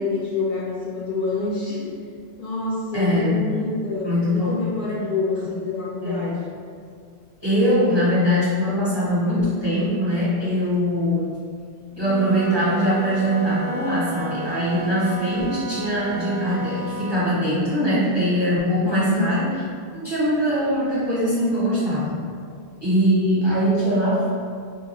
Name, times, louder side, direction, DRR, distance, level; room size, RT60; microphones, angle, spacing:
voice 1, 0.0-1.9 2.4-6.5 19.0-19.4, left 3 dB, 60° left, -7 dB, 0.6 m, -27 dB
voice 2, 2.9-3.5 4.0-4.7 6.0-6.3 7.4-11.3 12.0-19.5 19.9-22.2 22.8-24.3, equal, 25° right, -10 dB, 0.8 m, -22 dB
Wind instrument woodwind instrument, 11.9-17.3, right 2 dB, 45° right, 0.5 m, -33 dB
3.6 x 2.3 x 2.9 m, 2.2 s
omnidirectional pair, 1.1 m